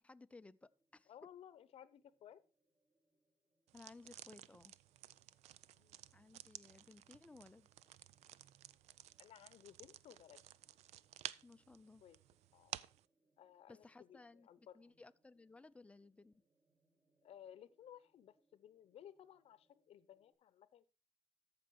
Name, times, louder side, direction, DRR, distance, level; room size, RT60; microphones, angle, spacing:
voice 1, 0.0-1.1 3.7-4.7 6.1-7.7 11.4-12.0 13.7-14.5 14.7-16.4, left 3 dB, 10° left, 0.4 m, -59 dB
sound 1, 0.6-20.3, right 2 dB, 40° right, 3.4 m, -85 dB
voice 2, 1.1-2.4 5.7-6.0 9.2-10.4 12.0-12.2 12.5-12.7 13.4-15.0 17.2-20.8, left 10 dB, 65° left, 0.7 m, -59 dB
sound 2, 3.7-13.0, right 13 dB, 85° right, 0.4 m, -54 dB
14.0 x 5.2 x 4.7 m
cardioid pair, 105°, 11 cm